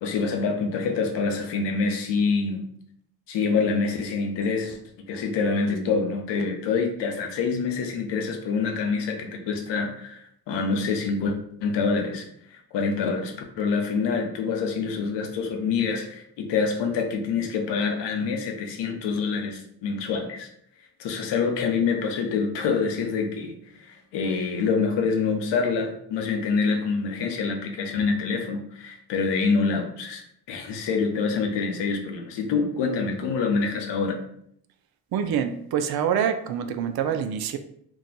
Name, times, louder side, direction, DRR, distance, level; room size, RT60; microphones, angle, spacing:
voice 1, 0.0-2.6 3.3-11.3 11.6-12.3 12.5-20.5 21.0-34.2, left 5 dB, 75° left, 4 dB, 0.7 m, -26 dB
voice 2, 35.1-37.6, right 8 dB, 60° right, 8 dB, 0.5 m, -26 dB
2.4 x 2.3 x 4.0 m, 0.68 s
supercardioid pair, 55°, 43 cm